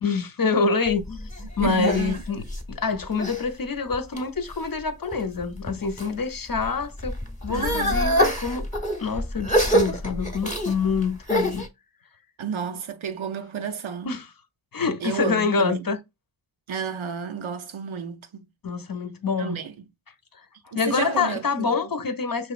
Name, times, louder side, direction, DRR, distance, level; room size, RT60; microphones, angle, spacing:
voice 1, 0.0-7.2 7.4-8.7 9.0-11.6 14.0-14.3 14.7-16.0 18.6-19.6 20.3-22.5, left 5 dB, 50° left, 0.7 m, -26 dB
sound 1, 0.9-3.4 3.9-4.5 5.1-6.1 6.5-11.7, equal, 15° left, 0.8 m, -26 dB
voice 2, 1.6-2.2 7.5-8.1 12.4-14.2 15.0-15.9 16.7-18.5 19.4-19.7 20.7-21.8, right 7 dB, 90° right, 0.6 m, -31 dB
5.5 x 2.9 x 2.4 m
wide cardioid pair, 50°, 46 cm